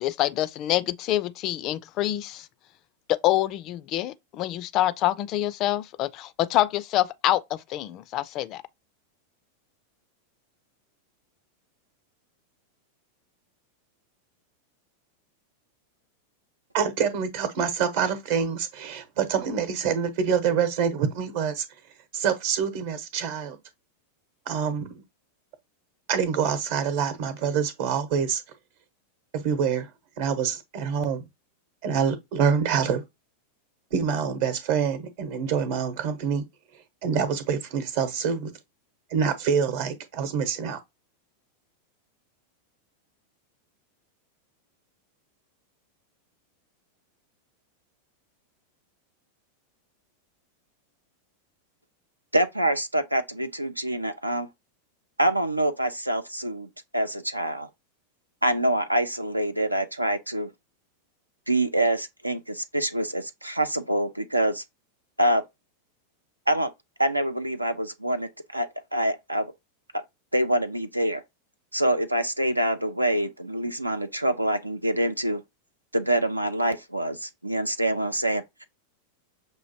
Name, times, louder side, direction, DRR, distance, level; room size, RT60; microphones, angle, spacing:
voice 1, 0.0-2.5 3.1-8.6, left 14 dB, 35° left, 0.3 m, -26 dB
voice 2, 16.7-21.6 22.1-23.6 24.5-25.0 26.1-28.4 29.3-29.9 30.2-31.2 31.8-33.0 33.9-36.4 37.0-38.5 39.1-40.8, right 7 dB, 50° right, 0.9 m, -26 dB
voice 3, 52.3-54.5 55.2-56.7 56.9-57.7 58.4-60.5 61.5-64.6 65.2-65.4 66.5-66.7 67.0-69.5 69.9-70.0 70.3-71.2 71.7-75.4 75.9-78.7, right 1 dB, 85° right, 0.4 m, -26 dB
6.2 x 2.6 x 2.7 m
figure-of-eight pair, 90°, 0 cm